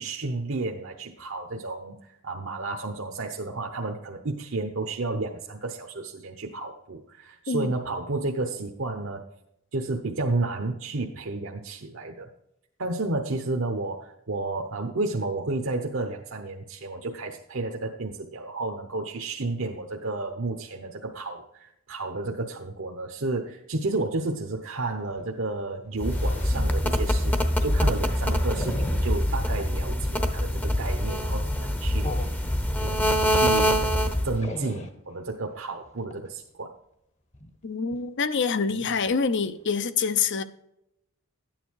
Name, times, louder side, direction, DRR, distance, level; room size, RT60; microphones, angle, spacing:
voice 1, 0.0-9.2 9.7-12.3 12.8-32.4 32.8-33.8 34.2-36.7, right 2 dB, 65° right, 1.0 m, -32 dB
sound 1, 25.0-29.7 30.2-30.4 30.8-31.1 31.6-33.0 33.5-33.6 33.9-35.0 35.8-36.2 37.3-37.5 37.9-38.0 38.4-38.5 38.7-39.2 39.6-39.7, left 1 dB, 35° left, 1.0 m, -39 dB
sound 2, 26.0-34.4, equal, 10° left, 0.8 m, -24 dB
voice 2, 37.6-40.4, left 5 dB, 60° left, 0.7 m, -26 dB
12.5 x 9.2 x 4.7 m
head